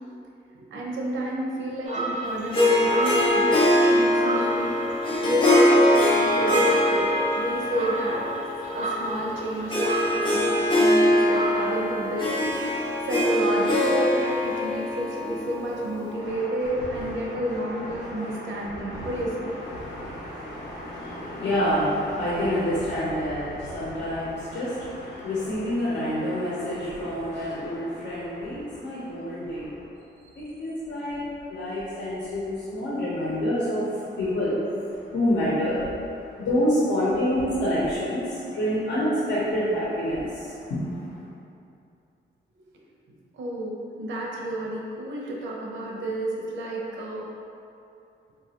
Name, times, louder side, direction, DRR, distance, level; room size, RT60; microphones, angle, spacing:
voice 1, 0.5-4.7 5.2-7.1 7.3-8.2 8.8-12.5 13.0-19.5 30.2-30.4 43.3-47.2, equal, 80° right, -3 dB, 0.6 m, -30 dB
sound 1, 1.9-11.5, right 2 dB, 40° right, 0.4 m, -33 dB
Harp, 2.5-16.2, left 1 dB, 25° left, 0.5 m, -23 dB
voice 2, 16.8-17.4 17.8-29.8 30.6-31.2 31.5-34.6 35.1-35.9 36.2-40.9, equal, 70° left, -9 dB, 0.7 m, -28 dB
3.8 x 2.3 x 2.8 m, 2.6 s
wide cardioid pair, 170°, 20 cm